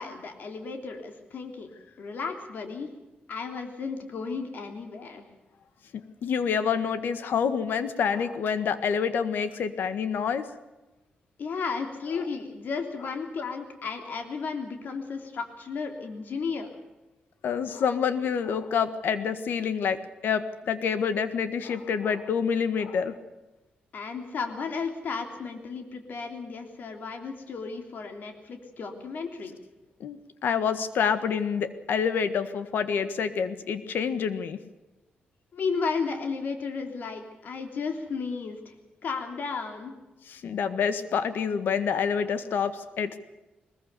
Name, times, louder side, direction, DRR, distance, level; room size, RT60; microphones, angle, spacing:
voice 1, 0.0-2.9 3.3-5.2 11.4-16.7 23.9-29.6 35.5-38.7 39.0-40.0, left 5 dB, 65° left, 5 dB, 3.2 m, -34 dB
voice 2, 5.9-10.5 17.4-23.2 30.0-34.6 40.3-43.2, left 6 dB, 85° left, 11 dB, 1.6 m, -27 dB
21.0 x 20.5 x 6.9 m, 1.1 s
wide cardioid pair, 120°, 3 cm